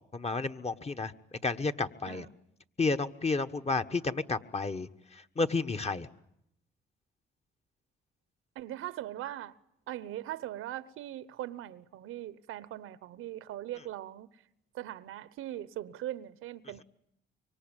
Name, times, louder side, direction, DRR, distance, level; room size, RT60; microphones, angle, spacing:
voice 1, 0.1-1.1 1.4-2.3 2.8-6.1, left 3 dB, 30° left, 1.4 m, -31 dB
voice 2, 8.5-9.6 9.9-14.4 14.7-16.8, right 13 dB, 80° right, 1.0 m, -40 dB
25.0 x 23.5 x 9.0 m
supercardioid pair, 65°, 21 cm